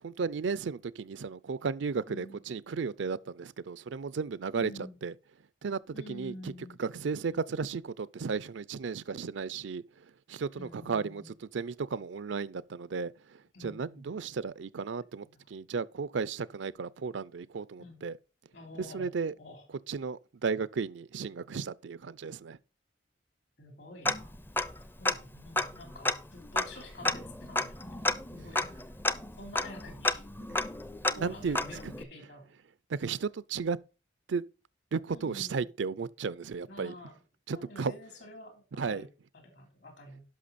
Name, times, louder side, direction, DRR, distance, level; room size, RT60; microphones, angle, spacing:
voice 1, 0.0-5.1 5.6-6.5 6.8-9.8 10.3-18.1 18.8-19.3 19.9-22.6 31.1-31.9 32.9-33.8 34.3-34.4 34.9-36.9 37.5-37.9 38.8-39.1, right 5 dB, 75° right, 0.5 m, -34 dB
voice 2, 2.1-2.4 4.6-5.0 5.9-6.8 7.3-7.4 10.6-11.3 13.5-14.1 15.2-15.4 17.8-18.1 18.5-19.1 19.4-19.6 23.6-24.3 25.0-28.0 28.3-28.6 29.4-30.2 31.1-32.5 35.1-35.7 36.7-37.2 37.5-39.1 39.3-40.2, left 1 dB, 70° left, 3.5 m, -48 dB
Tick-tock, 24.0-24.8 25.0-25.1 25.5-32.0, left 2 dB, 10° left, 0.5 m, -32 dB
11.5 x 5.8 x 4.1 m
head